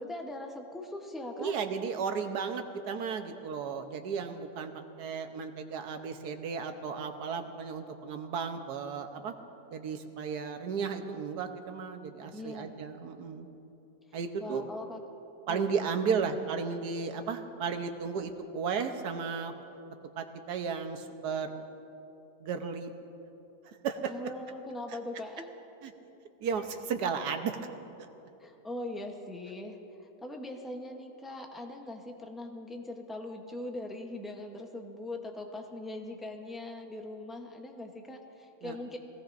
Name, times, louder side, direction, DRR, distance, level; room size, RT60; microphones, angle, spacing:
voice 1, 0.0-1.5 12.3-12.8 14.4-15.0 15.5-15.7 16.1-16.3 24.1-25.5 28.4-39.0, left 1 dB, ahead, 2 dB, 0.3 m, -41 dB
voice 2, 1.4-4.7 5.0-9.3 9.7-13.5 14.1-14.6 15.5-19.5 20.2-21.6 22.4-22.9 23.8-24.3 25.8-25.9 26.4-27.6 38.6-38.8, right 6 dB, 75° right, 6 dB, 1.4 m, -34 dB
21.0 x 17.5 x 2.6 m, 2.9 s
omnidirectional pair, 1.8 m